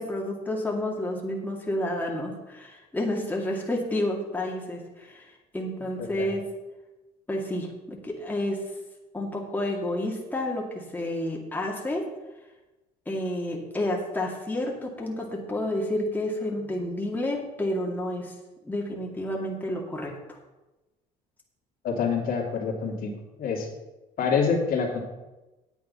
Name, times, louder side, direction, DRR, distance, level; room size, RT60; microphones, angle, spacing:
voice 1, 0.0-6.4 7.3-8.6 9.1-12.0 13.1-18.3 18.6-20.4, left 1 dB, 10° left, -2 dB, 2.2 m, -30 dB
voice 2, 21.8-23.1 23.4-23.7 24.2-25.0, left 5 dB, 60° left, -1 dB, 2.6 m, -26 dB
9.1 x 8.4 x 5.6 m, 1.0 s
cardioid pair, 110°, 17 cm